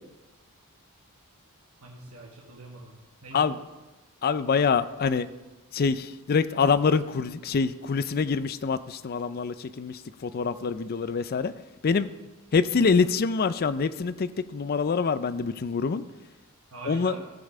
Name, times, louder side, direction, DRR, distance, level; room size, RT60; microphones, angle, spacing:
voice 1, 1.8-2.9 3.2-3.6 16.7-17.2, right 3 dB, 70° right, -2 dB, 1.3 m, -43 dB
voice 2, 4.2-5.3 5.7-11.5 11.8-12.1 12.5-16.0 16.8-17.2, left 5 dB, 45° left, 14 dB, 0.4 m, -25 dB
15.5 x 5.4 x 4.9 m, 1.1 s
head